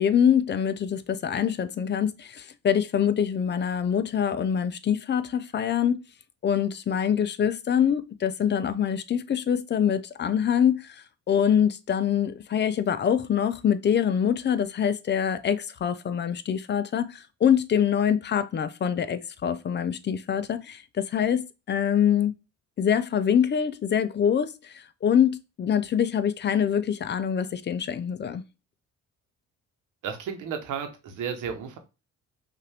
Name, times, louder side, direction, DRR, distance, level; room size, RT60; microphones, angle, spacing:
voice 1, 0.0-6.0 6.4-22.3 22.8-28.4, left 8 dB, 35° left, 0.4 m, -25 dB
voice 2, 30.0-31.8, right 7 dB, 85° right, 1.0 m, -33 dB
5.6 x 2.5 x 3.4 m
cardioid pair, 90°, 30 cm